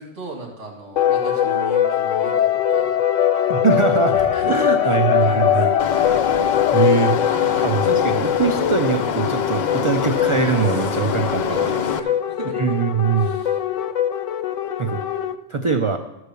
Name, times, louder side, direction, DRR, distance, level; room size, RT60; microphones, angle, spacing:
voice 1, 0.0-3.0 4.1-5.9 7.4-7.7 10.7-10.9 11.5-12.8 13.1-13.6, right 3 dB, 70° right, -1 dB, 2.5 m, -36 dB
sound 1, 1.0-15.3, left 10 dB, 85° left, 1.0 m, -21 dB
voice 2, 3.5-4.2 4.5-5.7 6.7-7.2 7.6-11.5 12.6-13.4 14.8-15.0 15.5-16.0, right 5 dB, 40° right, 5 dB, 0.4 m, -21 dB
sound 2, 5.8-12.0, left 6 dB, 50° left, 0.5 m, -26 dB
13.5 x 4.7 x 6.9 m, 1.0 s
omnidirectional pair, 1.3 m